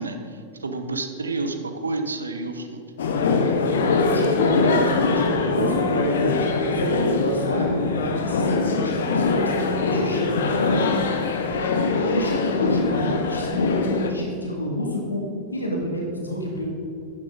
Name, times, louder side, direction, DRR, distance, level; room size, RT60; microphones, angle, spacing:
voice 1, 0.0-2.8, right 3 dB, 75° right, 7 dB, 0.9 m, -30 dB
sound 1, 3.0-14.1, left 3 dB, 65° left, 1.0 m, -22 dB
voice 2, 4.0-7.7 8.2-11.0 12.1-15.2 15.5-16.6, equal, 80° left, -1 dB, 2.3 m, -29 dB
11.5 x 9.5 x 3.9 m, 2.6 s
figure-of-eight pair, 90°, 0 cm